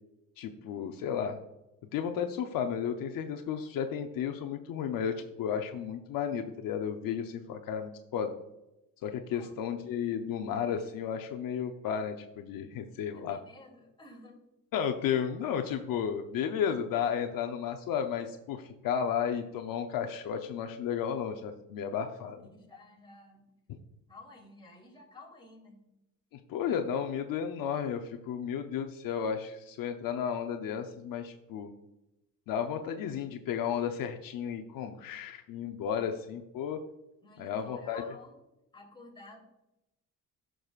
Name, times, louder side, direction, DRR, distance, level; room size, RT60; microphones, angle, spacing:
voice 1, 0.4-1.4 1.9-8.3 9.0-13.4 14.7-22.4 26.3-31.7 32.5-36.8 37.4-38.0, left 8 dB, 70° left, 5 dB, 0.7 m, -33 dB
voice 2, 9.2-9.6 13.1-14.4 22.5-23.4 24.1-25.9 35.9-36.2 37.2-38.4 38.7-39.4, left 2 dB, 15° left, -1 dB, 2.7 m, -52 dB
14.0 x 6.2 x 2.4 m, 0.92 s
cardioid pair, 135°, 35 cm